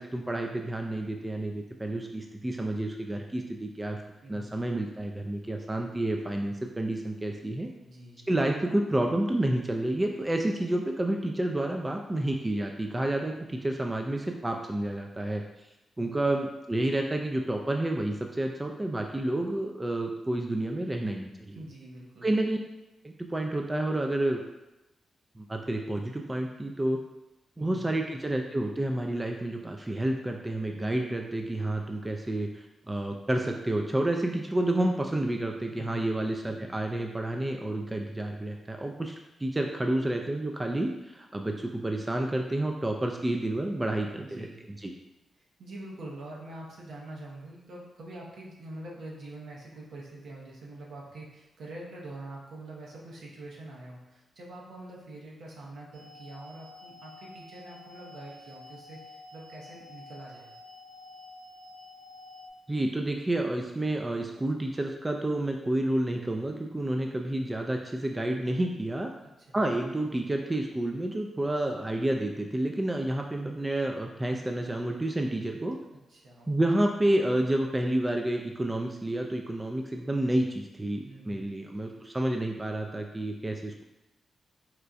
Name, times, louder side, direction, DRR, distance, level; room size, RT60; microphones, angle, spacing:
voice 1, 0.0-4.0 4.3-7.7 8.3-15.4 16.0-21.6 22.2-22.6 23.0-24.4 25.4-27.0 27.6-39.1 39.4-44.9 62.7-69.1 69.5-75.8 76.5-83.8, right 1 dB, 25° right, 2 dB, 0.4 m, -29 dB
voice 2, 4.2-4.6 7.8-8.3 21.5-22.3 27.6-27.9 35.7-36.0 43.9-44.6 45.6-60.5 69.4-69.6 75.9-76.5 81.0-81.5 81.9-82.1, right 1 dB, 70° right, -3 dB, 0.8 m, -45 dB
sound 1, 55.9-62.5, left 3 dB, 85° right, 0.4 m, -49 dB
4.2 x 2.2 x 2.5 m, 0.99 s
hypercardioid pair, 40°, 0 cm